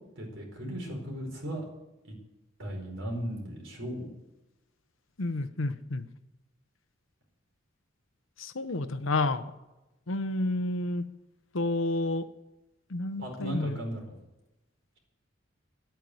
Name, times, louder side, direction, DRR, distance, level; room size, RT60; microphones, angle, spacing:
voice 1, 0.1-1.6 2.0-2.1 2.6-4.1 13.2-14.2, equal, 65° right, 0 dB, 4.8 m, -36 dB
voice 2, 5.2-6.0 8.4-9.5 10.1-11.1 11.5-12.3 12.9-13.8, left 2 dB, 75° left, 12 dB, 0.9 m, -30 dB
10.5 x 9.2 x 9.6 m, 1.0 s
head